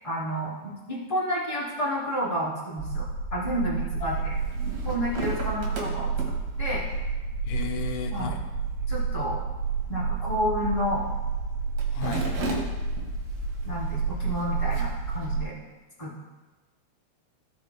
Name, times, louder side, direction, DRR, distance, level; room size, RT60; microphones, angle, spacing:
voice 1, 0.0-3.0 3.3-4.3 4.8-6.8 8.1-8.3 8.9-9.4 9.9-11.1 12.0-12.1 12.5-12.6 13.6-15.5 16.0-16.1, equal, 10° left, -8 dB, 2.1 m, -30 dB
sound 1, 2.8-15.4, right 4 dB, 75° right, 2.9 m, -30 dB
sound 2, 4.1-15.3, right 1 dB, 55° right, 2.0 m, -40 dB
voice 2, 7.5-8.4 11.9-12.3, left 6 dB, 80° left, 3 dB, 2.8 m, -34 dB
18.0 x 6.5 x 2.2 m, 1.2 s
omnidirectional pair, 5.2 m